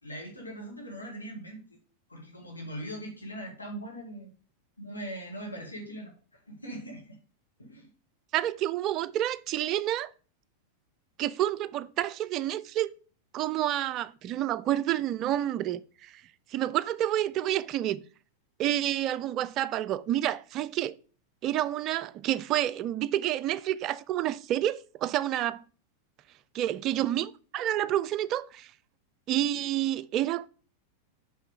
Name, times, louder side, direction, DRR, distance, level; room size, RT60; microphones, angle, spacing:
voice 1, 0.0-1.8 2.1-4.3 4.8-6.1 6.5-7.2 7.6-7.9, right 1 dB, 80° left, 1.8 m, -40 dB
voice 2, 8.3-10.1 11.2-12.9 13.3-16.2 16.5-18.0 18.6-20.9 21.4-25.6 26.5-28.7 29.3-30.5, right 12 dB, 35° right, 0.3 m, -29 dB
5.8 x 5.6 x 3.6 m
figure-of-eight pair, 90°, 0 cm